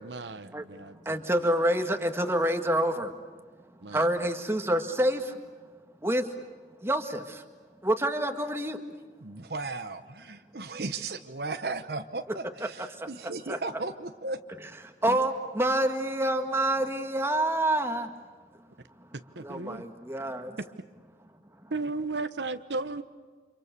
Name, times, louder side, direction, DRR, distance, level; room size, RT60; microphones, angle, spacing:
voice 1, 0.0-1.5 3.8-4.1 19.3-19.8 21.7-23.0, right 3 dB, 80° right, 10 dB, 1.1 m, -35 dB
voice 2, 1.1-3.1 3.9-5.4 6.0-6.3 6.8-7.4 7.8-8.8 13.0-13.1 13.5-13.6 15.0-18.1 19.4-20.6, right 1 dB, 15° right, 6 dB, 1.8 m, -27 dB
voice 3, 9.2-14.4 15.1-15.2, right 3 dB, 60° right, 8 dB, 1.0 m, -36 dB
30.0 x 27.0 x 6.8 m, 1.5 s
head